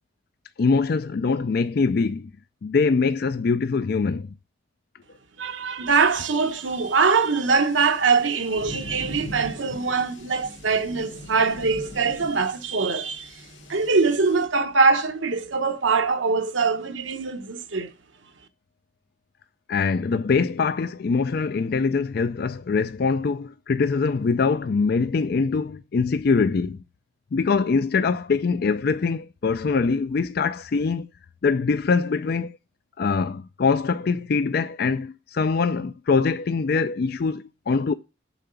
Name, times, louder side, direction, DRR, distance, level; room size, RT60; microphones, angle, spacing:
voice 1, 0.6-2.3 2.6-4.3 19.7-26.8 27.3-31.1 31.4-32.6 33.0-37.9, left 4 dB, 50° left, 0.4 m, -23 dB
voice 2, 5.4-13.4 13.7-17.9, right 4 dB, 80° right, 1.0 m, -23 dB
sound 1, 5.9-14.5, left 1 dB, 80° left, 2.3 m, -42 dB
7.1 x 4.8 x 6.8 m
head